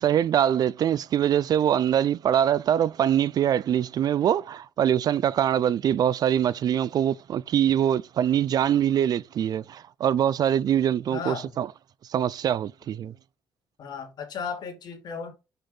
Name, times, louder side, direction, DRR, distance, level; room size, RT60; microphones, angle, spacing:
voice 1, 0.0-11.7 12.1-13.1, right 10 dB, 55° right, 0.4 m, -23 dB
voice 2, 11.1-11.6 13.8-15.3, left 6 dB, 60° left, 2.8 m, -35 dB
6.1 x 5.2 x 5.5 m
cardioid pair, 115°, 8 cm